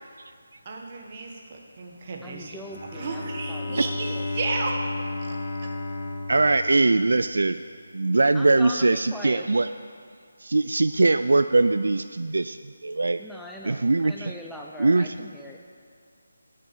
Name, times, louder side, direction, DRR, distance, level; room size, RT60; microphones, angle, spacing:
voice 1, 0.6-4.8 5.2-5.7, right 3 dB, 40° right, 1 dB, 1.5 m, -34 dB
voice 2, 2.2-4.3 8.3-9.5 13.2-15.6, left 1 dB, ahead, -1 dB, 0.4 m, -41 dB
Bowed string instrument, 2.6-7.6, left 2 dB, 45° left, 1.5 m, -33 dB
voice 3, 6.3-7.6 7.9-9.7 10.4-13.2 13.6-14.3 14.8-15.1, right 3 dB, 75° right, 11 dB, 0.3 m, -21 dB
12.5 x 6.5 x 6.8 m, 2.2 s
figure-of-eight pair, 160°, 0 cm